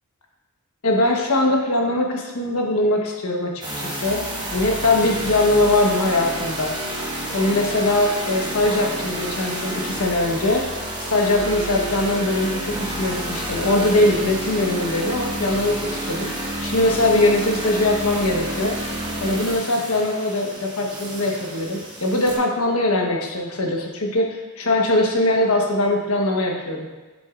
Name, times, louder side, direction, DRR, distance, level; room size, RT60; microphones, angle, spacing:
voice 1, 0.8-4.2 4.5-6.7 7.3-10.6 11.0-16.3 16.6-18.8 19.2-26.9, left 2 dB, 75° left, 0 dB, 1.2 m, -21 dB
sound 1, 3.6-22.4, right 1 dB, 20° right, 1.4 m, -30 dB
8.0 x 7.7 x 2.5 m, 1.3 s
head